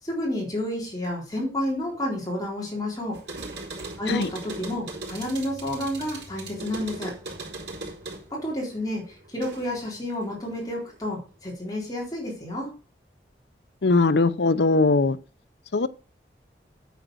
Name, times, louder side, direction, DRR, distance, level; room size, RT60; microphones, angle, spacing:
voice 1, 0.0-3.2 4.0-7.1 8.3-12.7, left 1 dB, 20° left, 3.9 m, -30 dB
sound 1, 3.1-9.9 10.2-11.1, right 2 dB, 75° right, 4.0 m, -39 dB
voice 2, 13.8-15.2 15.7-15.9, left 3 dB, 75° left, 0.7 m, -20 dB
9.3 x 8.0 x 6.2 m
head